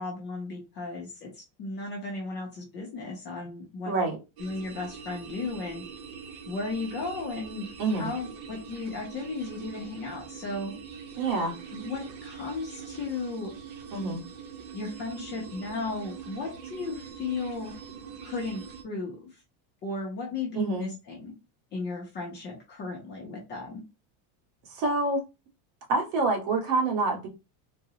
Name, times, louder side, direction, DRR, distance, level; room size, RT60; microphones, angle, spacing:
voice 1, 0.0-3.9 4.4-5.8 6.5-7.7 7.9-10.7 11.7-13.5 14.7-17.7 18.2-19.4 19.8-21.3 21.7-23.8, left 3 dB, 25° left, -2 dB, 0.4 m, -35 dB
voice 2, 3.9-4.2 7.8-8.1 11.2-11.5 13.9-14.2 20.5-20.9 24.7-25.2 25.9-27.3, right 3 dB, 65° right, 1 dB, 1.4 m, -26 dB
sound 1, 4.4-18.8, right 7 dB, 85° right, 0.9 m, -43 dB
3.7 x 2.0 x 2.7 m, 0.28 s
cardioid pair, 175°, 50 cm